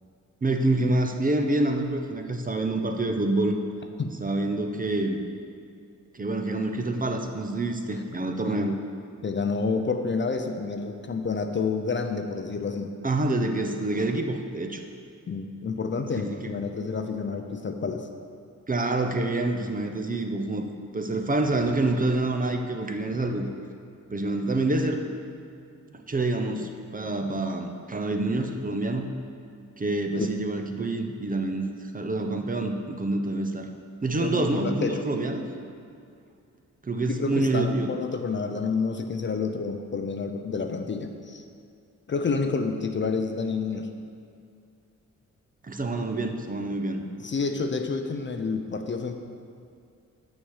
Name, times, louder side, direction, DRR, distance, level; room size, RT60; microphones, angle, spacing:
voice 1, 0.4-3.6 4.2-5.2 6.1-8.8 13.0-14.8 16.2-16.4 18.7-20.7 20.9-23.5 24.1-25.0 25.9-29.1 29.8-33.7 34.0-35.4 36.8-37.9 45.6-47.1, right 2 dB, 25° right, 4 dB, 0.7 m, -27 dB
voice 2, 8.4-8.8 9.2-12.9 15.3-18.1 26.6-26.7 30.2-30.3 34.2-35.0 37.1-41.4 42.1-43.9 47.2-49.1, left 4 dB, 35° left, 6 dB, 0.6 m, -29 dB
6.4 x 6.2 x 6.4 m, 2.3 s
cardioid pair, 80°, 32 cm